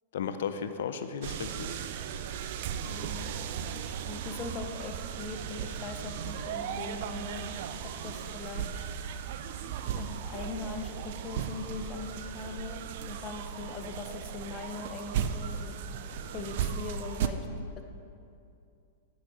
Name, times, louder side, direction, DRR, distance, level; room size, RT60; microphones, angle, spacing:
voice 1, 0.1-1.8, left 7 dB, 70° left, 10 dB, 0.4 m, -34 dB
sound 1, 1.2-17.3, right 8 dB, 60° right, 0.4 m, -36 dB
voice 2, 2.8-3.3 3.7-7.4 7.8-8.9 9.9-15.8 16.3-17.5 17.8-17.9, left 4 dB, 35° left, 5 dB, 0.7 m, -41 dB
9.3 x 5.6 x 3.0 m, 2.5 s
hypercardioid pair, 115°, 0 cm